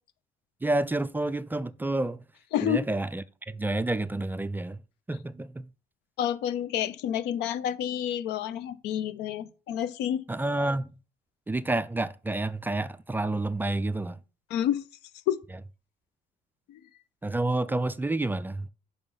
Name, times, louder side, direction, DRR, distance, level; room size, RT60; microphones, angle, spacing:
voice 1, 0.6-2.2 2.6-4.8 5.1-5.6 10.3-10.9 11.5-14.2 17.2-18.7, right 2 dB, 10° right, 0.3 m, -29 dB
voice 2, 2.5-2.8 6.2-10.2 14.5-14.8 15.3-15.4 16.7-16.8, left 10 dB, 85° left, 0.6 m, -29 dB
5.8 x 5.6 x 5.4 m
cardioid pair, 110°, 17 cm